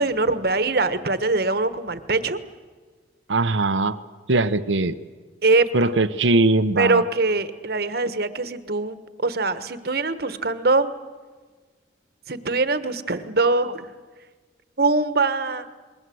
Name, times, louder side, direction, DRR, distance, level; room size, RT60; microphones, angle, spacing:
voice 1, 0.0-2.4 5.4-5.9 6.8-10.9 12.3-13.9 14.8-15.6, right 3 dB, 55° right, 12 dB, 1.3 m, -22 dB
voice 2, 3.3-4.0 4.3-5.0 5.7-7.0, right 2 dB, 90° right, 12 dB, 0.9 m, -20 dB
28.5 x 21.5 x 7.8 m, 1.4 s
head